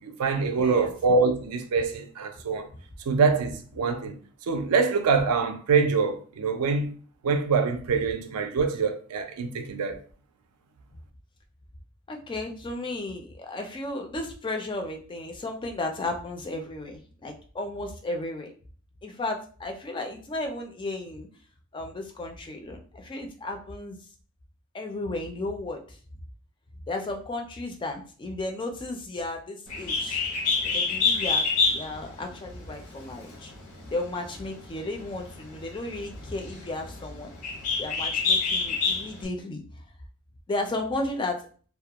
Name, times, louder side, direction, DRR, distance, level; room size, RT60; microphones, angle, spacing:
voice 1, 0.0-2.7 3.1-4.2 4.5-6.9 7.2-10.0, right 4 dB, 80° right, 0.4 m, -25 dB
voice 2, 0.5-0.9 12.1-18.5 19.0-21.3 21.7-24.0 24.7-26.0 26.9-30.2 30.6-33.5 33.9-37.3 37.8-39.8 40.5-41.5, left 2 dB, 20° left, 0.3 m, -34 dB
Bird, 29.7-39.2, left 4 dB, 80° left, 0.7 m, -28 dB
2.2 x 2.1 x 2.8 m
head